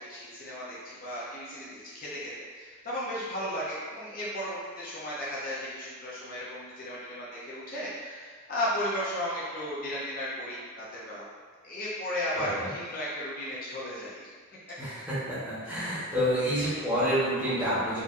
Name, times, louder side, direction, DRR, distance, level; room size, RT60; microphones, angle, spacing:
voice 1, 0.1-11.3 11.6-14.3 16.5-16.9, equal, 45° left, -8 dB, 0.7 m, -35 dB
voice 2, 12.4-12.7 14.8-18.0, equal, 10° right, -12 dB, 1.1 m, -28 dB
4.3 x 2.5 x 2.5 m, 1.6 s
head